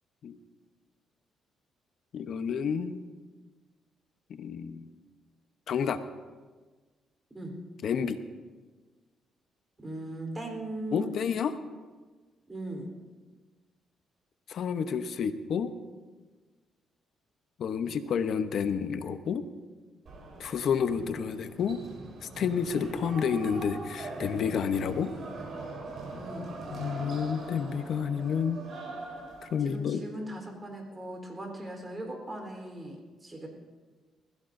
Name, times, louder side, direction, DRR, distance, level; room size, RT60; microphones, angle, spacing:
voice 1, 2.1-3.0 4.3-4.9 5.7-6.0 7.8-8.2 10.9-11.5 14.5-15.7 17.6-19.4 20.4-21.8 22.2-25.1 26.7-28.6 29.4-30.0, left 7 dB, 65° left, 10 dB, 0.9 m, -30 dB
voice 2, 9.8-11.1 12.5-12.9 26.1-26.5 29.6-33.5, right 1 dB, 25° right, 2 dB, 3.8 m, -39 dB
sound 1, 20.1-29.6, right 2 dB, 55° right, 4.4 m, -41 dB
20.5 x 15.5 x 2.7 m, 1.4 s
cardioid pair, 90°, 0 cm